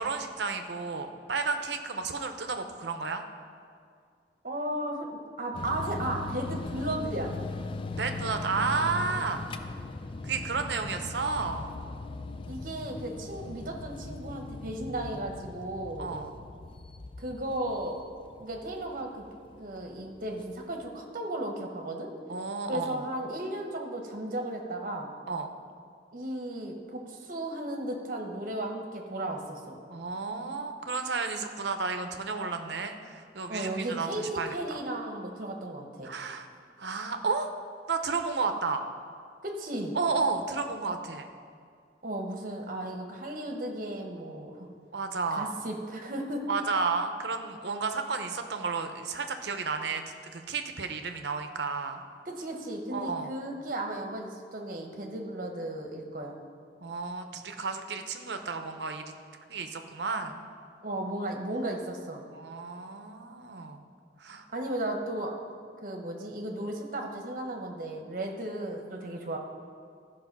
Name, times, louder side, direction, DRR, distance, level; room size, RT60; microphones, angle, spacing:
voice 1, 0.0-3.2 8.0-9.4 10.2-11.7 16.0-16.3 22.3-23.0 25.3-25.5 29.9-34.8 36.0-36.5 36.8-37.5 37.9-38.8 39.9-41.3 44.9-45.5 46.5-52.0 52.9-53.3 56.8-59.1 59.5-60.4 62.3-63.8 64.2-64.5, right 4 dB, 70° right, 6 dB, 0.7 m, -32 dB
voice 2, 4.4-7.3 12.5-16.1 17.2-18.0 18.4-19.3 19.5-22.1 22.6-25.1 26.1-29.8 33.5-34.2 34.5-36.1 39.4-40.0 42.0-44.7 45.3-46.4 52.3-56.4 60.8-62.2 64.5-65.4 65.8-69.4, right 1 dB, 50° right, 3 dB, 1.1 m, -35 dB
sound 1, 5.5-20.9, left 3 dB, 30° left, 0.4 m, -39 dB
14.5 x 4.8 x 6.0 m, 2.2 s
head